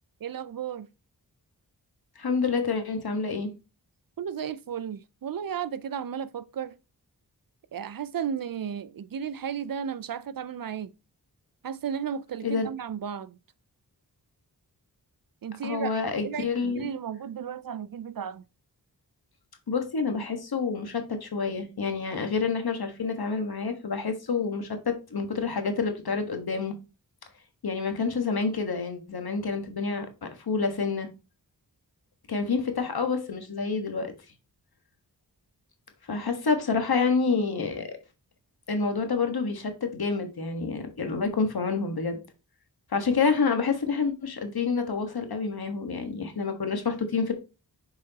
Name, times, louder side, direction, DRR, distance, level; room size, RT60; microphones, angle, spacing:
voice 1, 0.2-0.9 4.2-6.8 7.7-10.9 11.6-13.4 15.4-16.0 16.2-18.4, right 8 dB, 60° right, 0.5 m, -34 dB
voice 2, 2.2-3.5 12.4-12.7 15.6-16.9 19.7-26.7 27.6-31.1 32.3-34.1 36.1-37.9 38.7-42.2 42.9-47.3, left 4 dB, 65° left, 1.5 m, -28 dB
7.0 x 4.8 x 2.9 m
cardioid pair, 55°, 40 cm